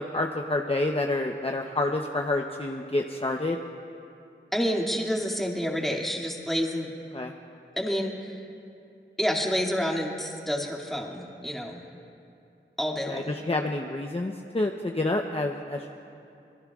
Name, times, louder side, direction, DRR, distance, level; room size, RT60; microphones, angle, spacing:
voice 1, 0.0-3.6 7.1-7.3 13.1-15.9, left 2 dB, 30° left, 2 dB, 0.8 m, -28 dB
voice 2, 4.5-6.9 7.7-8.4 9.2-11.8 12.8-13.3, equal, ahead, -2 dB, 2.3 m, -29 dB
26.5 x 21.0 x 2.4 m, 2.6 s
wide cardioid pair, 55°, 20 cm